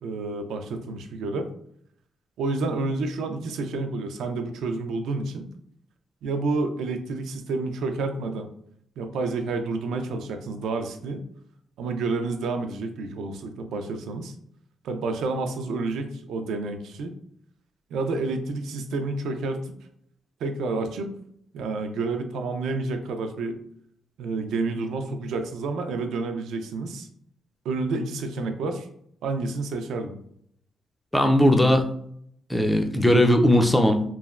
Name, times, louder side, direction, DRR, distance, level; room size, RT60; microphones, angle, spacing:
voice 1, 0.0-1.5 2.4-5.5 6.2-8.5 9.0-11.2 11.8-14.3 14.8-17.1 17.9-19.6 20.4-21.1 21.5-23.6 24.2-27.1 27.6-28.9 29.2-30.2, right 3 dB, 85° right, 6 dB, 0.4 m, -29 dB
voice 2, 31.1-31.9 32.5-34.0, left 1 dB, 5° left, 4 dB, 0.3 m, -18 dB
3.1 x 2.1 x 2.3 m, 0.67 s
cardioid pair, 140°, 0 cm